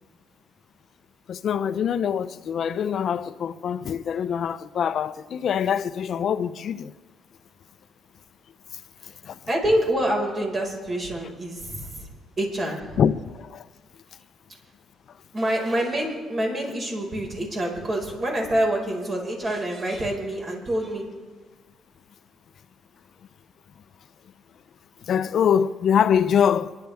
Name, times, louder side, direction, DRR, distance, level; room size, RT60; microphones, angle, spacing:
voice 1, 1.3-6.9 9.2-9.4 13.0-13.6 25.1-26.8, left 8 dB, 65° left, 0.5 m, -24 dB
voice 2, 9.5-12.1 12.4-13.0 15.3-21.0, right 1 dB, 35° right, 5.0 m, -26 dB
27.5 x 11.5 x 3.5 m
cardioid pair, 90°, 0 cm